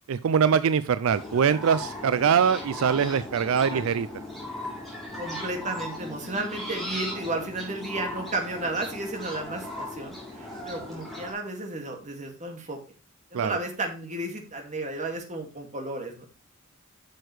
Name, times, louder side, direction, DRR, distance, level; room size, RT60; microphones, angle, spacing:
voice 1, 0.1-4.1 13.3-13.5, right 7 dB, 75° right, 15 dB, 0.4 m, -23 dB
sound 1, 1.1-11.3, left 1 dB, ahead, 3.3 m, -37 dB
voice 2, 3.4-3.8 5.2-12.8 13.3-16.3, right 2 dB, 35° right, 3 dB, 2.2 m, -33 dB
10.5 x 6.5 x 3.2 m, 0.35 s
head